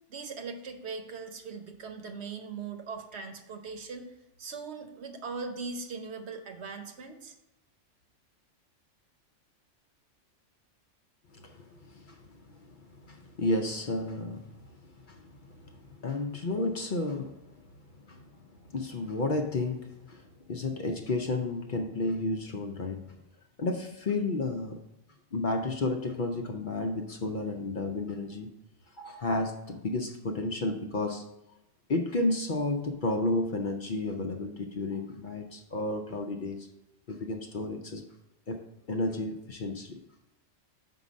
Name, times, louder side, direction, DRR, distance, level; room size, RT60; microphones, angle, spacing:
voice 1, 0.1-4.1 4.4-7.3, right 4 dB, 65° right, 5 dB, 1.0 m, -40 dB
voice 2, 11.3-12.2 12.6-12.7 13.1-14.5 15.0-17.4 17.9-18.3 18.7-20.2 20.5-23.1 23.6-24.8 25.3-28.5 29.0-31.2 31.9-36.7 37.1-38.0 38.5-38.6 38.9-40.0, left 2 dB, 50° left, 4 dB, 0.7 m, -32 dB
5.4 x 4.6 x 6.1 m, 0.94 s
omnidirectional pair, 1.2 m